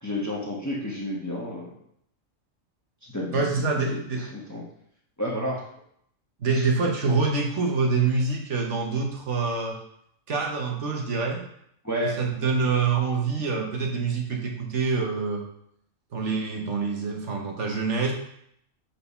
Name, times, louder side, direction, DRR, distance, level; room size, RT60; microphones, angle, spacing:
voice 1, 0.0-1.7 3.1-4.0 4.3-4.6 5.2-5.6 6.5-6.7 11.8-12.2, left 1 dB, 15° left, -4 dB, 1.2 m, -31 dB
voice 2, 3.3-4.3 6.4-9.8 10.3-11.4 12.0-15.4 16.1-18.1, right 4 dB, 65° right, 1 dB, 1.3 m, -26 dB
5.2 x 4.4 x 5.6 m, 0.71 s
omnidirectional pair, 1.4 m